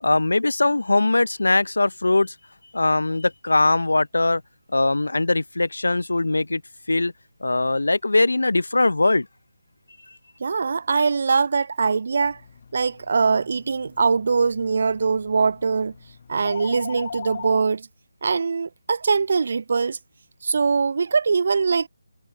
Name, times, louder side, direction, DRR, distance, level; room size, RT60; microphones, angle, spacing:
voice 1, 0.0-2.3 2.7-4.4 4.7-6.6 6.9-7.1 7.4-9.3, left 2 dB, 75° left, 0.7 m, -21 dB
voice 2, 10.4-12.4 12.7-15.9 16.3-17.9 18.2-20.0 20.4-21.9, right 5 dB, 55° right, 0.4 m, -22 dB
sound 1, 12.2-17.6, left 6 dB, 45° left, 0.8 m, -40 dB
figure-of-eight pair, 155°, 0 cm